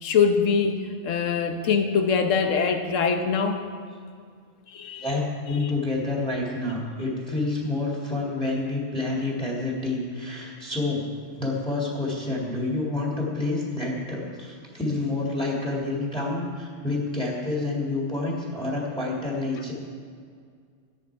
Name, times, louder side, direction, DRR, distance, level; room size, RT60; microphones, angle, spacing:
voice 1, 0.0-3.6 4.7-5.1 5.5-5.7, left 6 dB, 75° left, 6 dB, 1.3 m, -23 dB
voice 2, 5.0-11.0 11.4-19.7, left 2 dB, 5° left, -3 dB, 2.1 m, -28 dB
13.5 x 10.5 x 4.7 m, 2.1 s
omnidirectional pair, 1.3 m